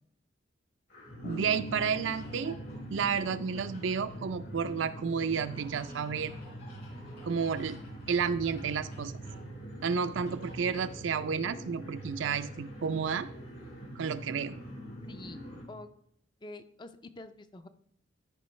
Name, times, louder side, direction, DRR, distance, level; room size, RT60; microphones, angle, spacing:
sound 1, 0.9-15.6, right 1 dB, 70° left, 3.9 m, -44 dB
Bass guitar, 1.2-4.8, right 2 dB, 90° left, 1.2 m, -45 dB
voice 1, 1.2-2.6 2.9-6.3 7.2-7.8 8.1-9.1 9.8-13.3 14.0-14.6, right 6 dB, 75° right, 12 dB, 0.4 m, -31 dB
sound 2, 1.3-4.2 5.3-9.5 10.3-11.0, left 1 dB, 55° left, 2.8 m, -56 dB
voice 2, 15.1-15.4 15.7-15.9 16.4-17.7, left 2 dB, 25° left, 10 dB, 0.4 m, -46 dB
13.0 x 5.3 x 3.2 m, 0.72 s
head